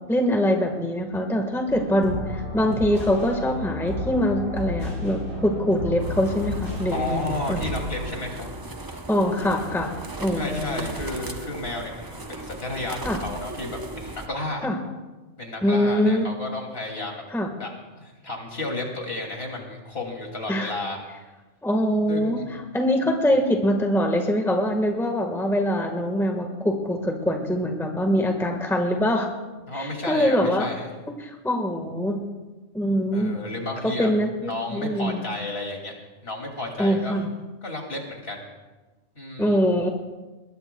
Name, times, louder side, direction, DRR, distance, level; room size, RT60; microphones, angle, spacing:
voice 1, 0.1-7.6 9.1-9.9 10.2-10.9 13.0-13.2 14.6-14.8 15.6-16.3 17.3-17.5 20.5-20.7 21.6-22.4 22.7-29.3 29.7-30.7 31.2-32.2 32.7-33.4 33.8-35.2 36.8-37.3 39.4-39.9, equal, ahead, 3 dB, 1.4 m, -23 dB
sound 1, 1.7-8.1, equal, 85° right, 6.5 m, -32 dB
sound 2, 6.0-14.3, right 2 dB, 20° right, 0.6 m, -37 dB
voice 2, 6.9-8.5 10.3-14.7 15.4-17.2 17.6-21.0 22.1-22.5 29.7-30.9 33.1-34.1 34.4-35.9 36.2-37.2 37.6-38.5 39.1-39.6, left 2 dB, 50° left, 1 dB, 2.9 m, -32 dB
22.0 x 20.5 x 2.3 m, 1.2 s
omnidirectional pair, 1.3 m